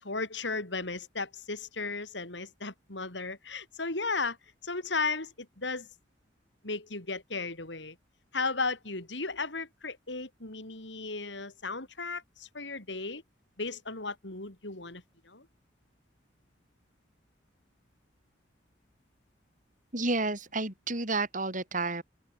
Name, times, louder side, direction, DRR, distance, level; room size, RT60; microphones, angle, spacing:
voice 1, 0.0-4.4 4.6-5.9 6.6-8.0 8.3-13.2 13.6-15.5, left 3 dB, 75° left, 4.5 m, -35 dB
voice 2, 19.9-22.0, right 3 dB, 45° right, 7.2 m, -30 dB
open air
head